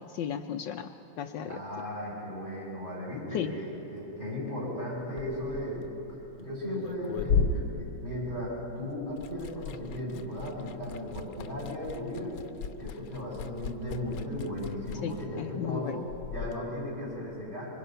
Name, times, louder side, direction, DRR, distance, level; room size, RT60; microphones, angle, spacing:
voice 1, 0.0-1.6 3.3-3.6 15.0-16.0, left 9 dB, 70° left, 7 dB, 1.3 m, -35 dB
voice 2, 1.4-5.9 6.4-12.3 12.8-17.8, left 1 dB, 20° right, -5 dB, 8.3 m, -36 dB
Liquid, 5.0-8.7 9.0-16.6, left 5 dB, 85° left, 1.6 m, -35 dB
26.0 x 24.0 x 5.7 m, 2.8 s
omnidirectional pair, 2.2 m